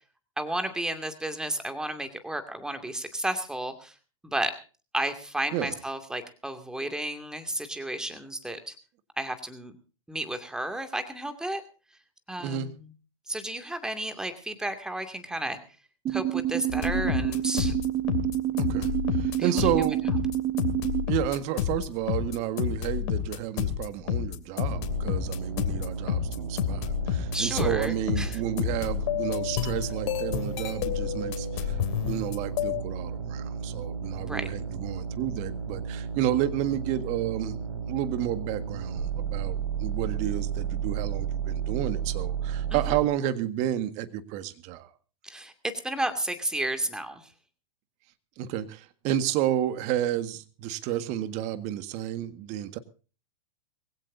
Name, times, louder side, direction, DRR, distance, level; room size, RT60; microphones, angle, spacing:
voice 1, 0.4-3.9 4.2-4.6 4.9-8.7 9.2-9.7 10.1-11.6 12.3-12.9 13.3-15.6 16.1-17.8 19.4-19.7 27.3-28.4 34.2-34.5 42.7-42.8 45.2-47.3, right 1 dB, 5° right, 8 dB, 2.4 m, -32 dB
sound 1, 16.1-21.1, right 13 dB, 25° right, 1.2 m, -28 dB
sound 2, 16.7-32.8, left 11 dB, 55° left, 2.8 m, -30 dB
voice 2, 18.6-20.0 21.1-37.6 37.9-44.9 48.4-52.8, right 11 dB, 40° right, 11 dB, 1.7 m, -31 dB
sound 3, 24.6-43.0, right 6 dB, 90° right, 4.8 m, -33 dB
23.0 x 16.5 x 2.7 m, 0.36 s
hypercardioid pair, 120°, 17 cm